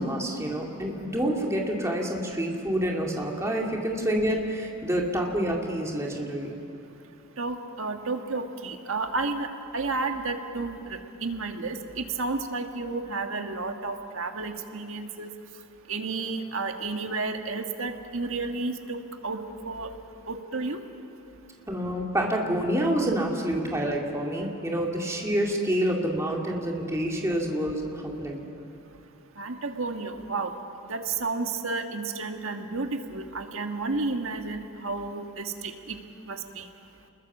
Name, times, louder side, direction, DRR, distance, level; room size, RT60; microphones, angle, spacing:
voice 1, 0.0-6.5 21.7-28.4, right 1 dB, 15° right, 0 dB, 2.3 m, -28 dB
voice 2, 7.4-15.3 15.9-19.0 19.2-19.4 19.6-19.9 20.3-20.8 29.4-30.5 30.9-36.0 36.3-36.7, right 3 dB, 65° right, 5 dB, 1.6 m, -31 dB
27.5 x 21.0 x 7.3 m, 2.7 s
head